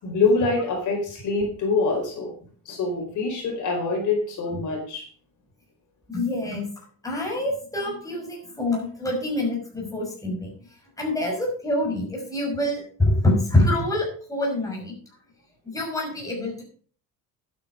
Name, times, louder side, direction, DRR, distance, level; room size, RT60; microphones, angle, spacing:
voice 1, 0.0-2.3 2.6-5.0, left 3 dB, 55° left, 1 dB, 4.7 m, -25 dB
voice 2, 6.1-10.5 11.0-14.9 15.7-16.6, left 1 dB, 10° left, -2 dB, 5.9 m, -26 dB
11.5 x 9.2 x 5.2 m, 0.43 s
cardioid pair, 155°, 35 cm